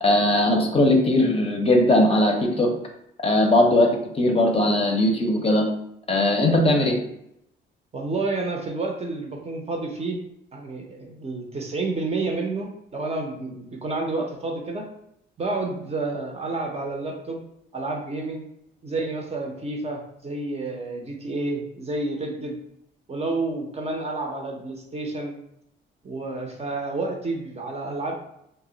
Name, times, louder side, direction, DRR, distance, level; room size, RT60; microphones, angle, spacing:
voice 1, 0.0-2.7 3.2-5.7 6.1-7.0, left 1 dB, 30° left, 1 dB, 0.6 m, -19 dB
voice 2, 7.9-10.2 10.5-14.9 15.4-17.4 17.7-18.5 18.8-22.6 23.1-25.3 26.0-28.1, right 3 dB, 30° right, 1 dB, 0.6 m, -30 dB
2.1 x 2.0 x 3.8 m, 0.76 s
cardioid pair, 90°, 20 cm